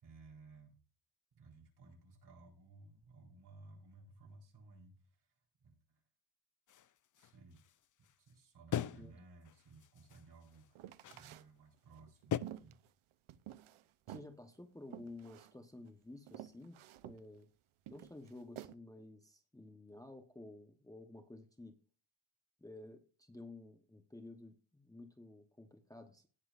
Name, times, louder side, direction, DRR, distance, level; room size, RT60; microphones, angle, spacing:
voice 1, 0.0-0.8 1.3-5.3 5.6-5.7 7.2-7.6 8.2-12.8, right 3 dB, 55° right, 1 dB, 4.3 m, -59 dB
sound 1, 6.7-8.3 8.7-9.2 9.4-10.7 11.0-11.4 12.3-12.4, left 10 dB, 40° left, 0.5 m, -41 dB
sound 2, 10.7-11.5 11.9-13.8 14.1-14.3 14.9-15.5 15.9-16.0 16.3-17.2 17.9-18.7, right 12 dB, 80° right, 0.8 m, -50 dB
voice 2, 14.1-16.8 17.0-17.5 17.9-21.8 22.6-26.3, left 2 dB, 5° left, 5 dB, 1.0 m, -53 dB
18.5 x 7.2 x 2.5 m, 0.38 s
wide cardioid pair, 140°, 48 cm